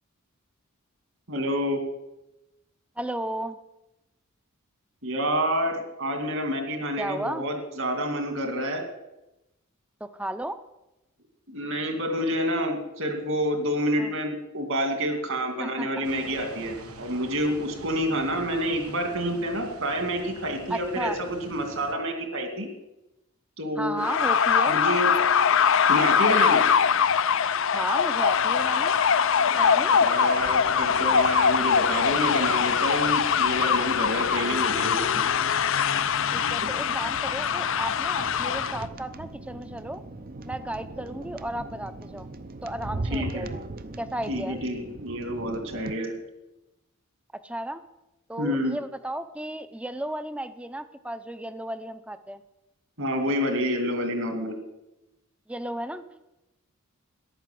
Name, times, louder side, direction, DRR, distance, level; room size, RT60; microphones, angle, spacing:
voice 1, 1.3-1.8 5.0-8.8 11.5-22.7 23.6-24.0 24.6-25.1 25.9-26.6 30.0-35.2 43.1-43.5 44.3-46.2 48.4-48.8 53.0-54.6, equal, 60° right, 5 dB, 2.7 m, -28 dB
voice 2, 3.0-3.6 7.0-7.4 10.0-10.6 14.0-14.1 15.6-16.1 20.7-21.2 23.8-24.8 27.7-29.0 29.5-30.1 36.3-40.0 40.4-42.3 42.6-43.6 44.0-44.6 47.4-47.8 48.3-52.4 55.5-56.2, right 1 dB, 5° right, 12 dB, 0.7 m, -34 dB
sound 1, 16.0-21.9, right 2 dB, 90° right, 1.6 m, -45 dB
sound 2, 24.0-38.8, left 7 dB, 60° left, 0.6 m, -22 dB
sound 3, 30.3-45.9, right 2 dB, 40° right, 0.7 m, -40 dB
14.0 x 11.0 x 7.7 m, 0.97 s
head